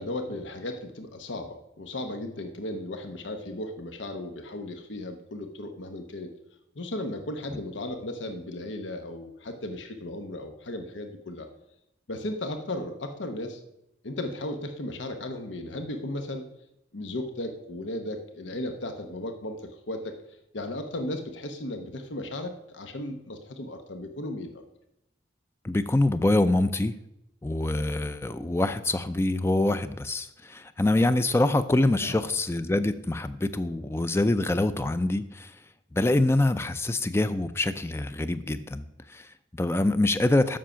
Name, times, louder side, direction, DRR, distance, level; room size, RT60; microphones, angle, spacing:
voice 1, 0.0-6.3 6.7-11.5 12.1-13.6 14.0-16.4 16.9-20.1 20.5-24.6 32.0-32.3, left 1 dB, 90° left, 6 dB, 0.9 m, -35 dB
voice 2, 25.6-26.9 27.4-35.5 35.9-40.6, left 2 dB, 15° left, 12 dB, 0.3 m, -25 dB
7.5 x 6.2 x 5.7 m, 0.84 s
head